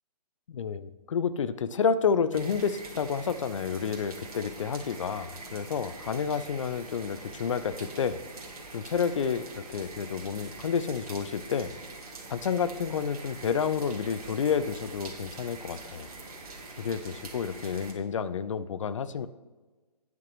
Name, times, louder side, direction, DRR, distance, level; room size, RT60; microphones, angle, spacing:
voice 1, 0.5-8.2 8.7-11.7 12.3-16.1 16.8-19.3, left 6 dB, 50° left, 14 dB, 0.6 m, -30 dB
sound 1, 2.3-17.9, right 3 dB, 60° right, 2.3 m, -44 dB
10.5 x 9.4 x 3.1 m, 1.3 s
figure-of-eight pair, 145°, 21 cm